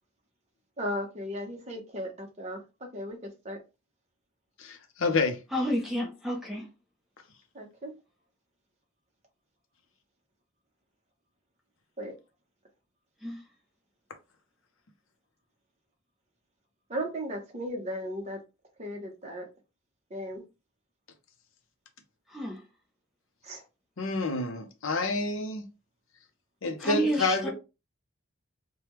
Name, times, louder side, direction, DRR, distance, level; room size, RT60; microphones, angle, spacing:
voice 1, 0.8-3.6 7.5-7.9 12.0-12.2 16.9-18.4 18.8-19.5 20.1-20.4 23.4-23.6 27.0-27.1, equal, 30° right, 0.8 m, -36 dB
voice 2, 4.6-5.4 24.0-25.6 26.6-27.5, left 3 dB, 65° left, 0.6 m, -28 dB
voice 3, 5.5-6.6 13.2-13.4 22.3-22.6 26.8-27.5, equal, ahead, 0.6 m, -30 dB
3.3 x 2.3 x 3.0 m
head